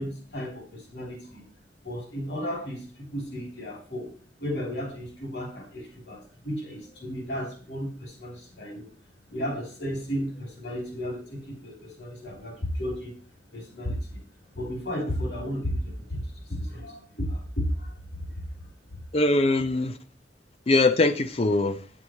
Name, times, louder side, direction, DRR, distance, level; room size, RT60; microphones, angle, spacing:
voice 1, 0.0-1.5 1.8-4.1 4.4-8.9 9.3-13.2 13.5-14.2 14.5-18.0, equal, 75° left, 3.0 m, -33 dB
voice 2, 19.1-20.0 20.7-21.8, left 2 dB, 35° left, 0.5 m, -22 dB
9.5 x 7.9 x 3.0 m
head